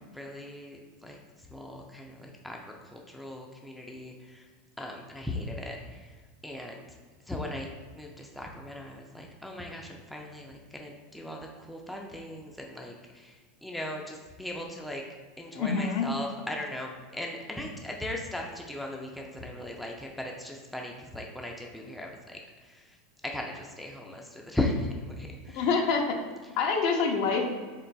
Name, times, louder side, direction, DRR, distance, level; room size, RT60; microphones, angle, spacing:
voice 1, 0.1-1.2 1.5-4.4 4.8-5.8 6.4-6.8 7.3-12.9 13.2-13.3 13.6-15.0 15.4-22.4 23.3-25.6, left 1 dB, 5° left, 0 dB, 0.4 m, -37 dB
voice 2, 15.5-16.1 25.5-26.2 26.6-27.5, left 5 dB, 60° left, 3 dB, 0.6 m, -26 dB
3.9 x 3.8 x 2.2 m, 1.5 s
supercardioid pair, 125°, 0 cm